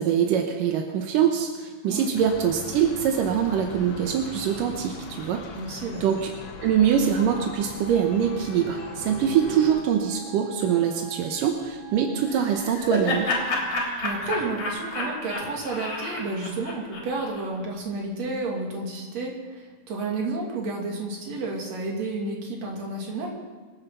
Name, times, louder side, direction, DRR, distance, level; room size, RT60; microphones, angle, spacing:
voice 1, 0.0-5.5 6.0-6.3 6.6-13.3, right 8 dB, 85° right, 3 dB, 2.6 m, -23 dB
sound 1, 2.1-9.8, left 5 dB, 85° left, 0.9 m, -40 dB
voice 2, 5.5-6.1 14.0-23.3, right 3 dB, 55° right, -1 dB, 3.8 m, -31 dB
Wind instrument woodwind instrument, 7.3-12.7, right 3 dB, 10° right, 3.4 m, -46 dB
Laughter, 12.3-17.4, left 2 dB, 60° left, 4.7 m, -30 dB
26.0 x 9.6 x 5.7 m, 1.3 s
omnidirectional pair, 3.8 m